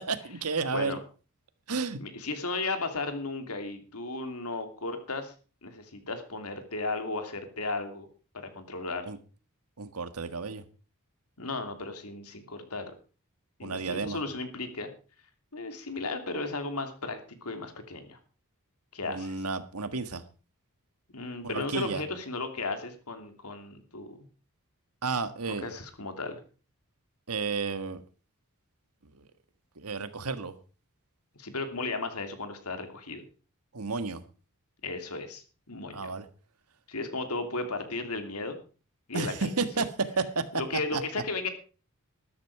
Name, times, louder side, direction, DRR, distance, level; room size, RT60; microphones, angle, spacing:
voice 1, 0.1-1.0 1.7-2.0 9.0-9.2 9.8-10.6 13.6-14.2 19.0-20.2 21.4-22.0 25.0-25.7 27.3-28.0 29.8-30.5 33.7-34.2 35.9-36.3 39.1-40.4 40.9-41.0, right 4 dB, 80° right, 11 dB, 1.6 m, -32 dB
voice 2, 2.0-5.3 5.6-8.1 8.3-9.1 11.4-12.9 13.6-14.9 15.5-18.2 18.9-19.4 21.1-24.2 25.5-26.4 31.4-33.2 34.8-36.1 36.9-38.6 39.1-39.7 40.5-41.5, left 3 dB, 80° left, 7 dB, 2.9 m, -35 dB
13.0 x 13.0 x 4.8 m, 0.37 s
head